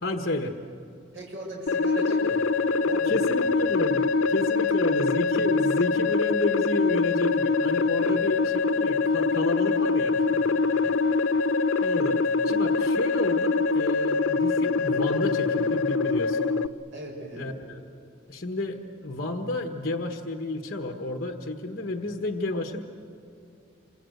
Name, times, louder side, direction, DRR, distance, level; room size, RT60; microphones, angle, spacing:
voice 1, 0.0-0.5 3.1-10.5 11.8-12.2 12.4-16.5 17.4-17.5 18.3-22.8, left 2 dB, 50° left, 4 dB, 1.3 m, -31 dB
voice 2, 1.1-2.4 2.8-3.5 8.0-8.3 10.7-11.0 16.9-17.5 21.9-22.2, right 1 dB, 70° right, -1 dB, 6.5 m, -38 dB
sound 1, 1.7-16.7, left 4 dB, 85° left, 0.7 m, -24 dB
27.5 x 25.5 x 8.0 m, 2.6 s
head